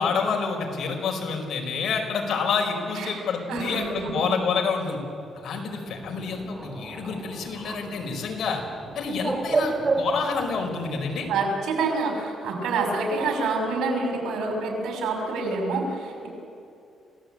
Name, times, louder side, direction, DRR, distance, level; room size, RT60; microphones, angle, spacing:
voice 1, 0.0-5.0 5.3-8.6 8.9-11.3, left 5 dB, 65° left, 2 dB, 4.9 m, -28 dB
voice 2, 3.5-4.3 11.3-16.3, right 3 dB, 85° right, 2 dB, 6.2 m, -27 dB
Bird, 5.9-11.4, right 3 dB, 25° right, 4.1 m, -31 dB
27.0 x 17.5 x 8.9 m, 2.5 s
cardioid pair, 125°, 0 cm